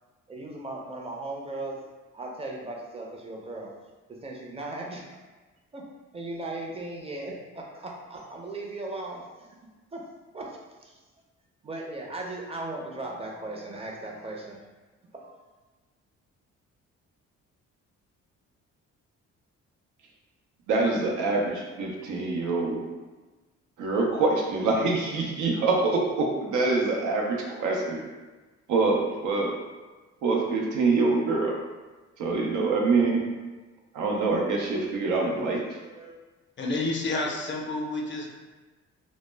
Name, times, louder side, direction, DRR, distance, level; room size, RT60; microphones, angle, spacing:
voice 1, 0.3-1.8 2.1-3.7 4.1-5.2 5.7-5.9 6.1-9.6 9.9-10.0 10.3-11.0 11.6-14.6 15.1-15.5 35.4-36.2, right 2 dB, 20° right, -1 dB, 0.5 m, -37 dB
voice 2, 20.7-22.8 23.8-28.0 28.7-29.6 30.2-31.6 32.2-33.3 33.9-35.6, right 3 dB, 85° right, 0 dB, 0.5 m, -25 dB
voice 3, 36.6-38.3, left 2 dB, 40° left, 0 dB, 0.4 m, -29 dB
2.1 x 2.0 x 3.2 m, 1.3 s
cardioid pair, 90°, 30 cm